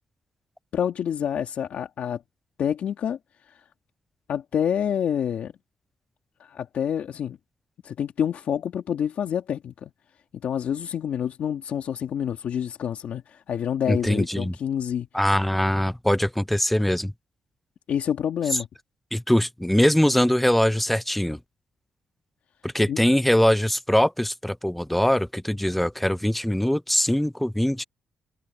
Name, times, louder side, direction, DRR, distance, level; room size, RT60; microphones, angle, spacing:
voice 1, 0.7-2.2 2.6-3.2 3.5-3.6 4.3-5.5 6.4-7.4 7.8-9.9 10.4-15.1 17.9-18.7 22.9-23.0, left 9 dB, 70° left, 2.1 m, -27 dB
voice 2, 13.9-14.5 15.1-17.1 19.1-21.4 22.6-27.8, equal, 5° left, 0.4 m, -22 dB
cardioid pair, 80°, 3 cm